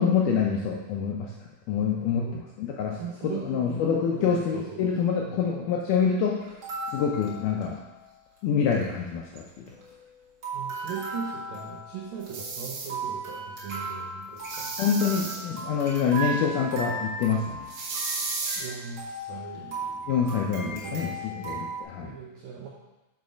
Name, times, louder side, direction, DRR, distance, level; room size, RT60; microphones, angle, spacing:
voice 1, 0.0-1.3 1.7-6.4 6.9-7.8 8.4-9.8 14.8-17.7 20.1-22.1, left 6 dB, 80° left, -1 dB, 1.8 m, -26 dB
voice 2, 2.1-2.5 2.9-3.8 4.1-5.0 5.2-5.4 10.5-14.7 18.6-20.1 20.6-21.7 22.0-22.7, right 6 dB, 85° right, -3 dB, 1.6 m, -39 dB
sound 1, 6.4-8.1 8.4-8.5 8.6-8.9 9.4-10.1 10.4-21.8, right 2 dB, 50° right, 1.6 m, -37 dB
sound 2, 12.2-12.9 14.4-15.4 17.7-18.6, right 4 dB, 65° right, 1.8 m, -33 dB
7.0 x 4.0 x 5.1 m, 1.0 s
omnidirectional pair, 4.3 m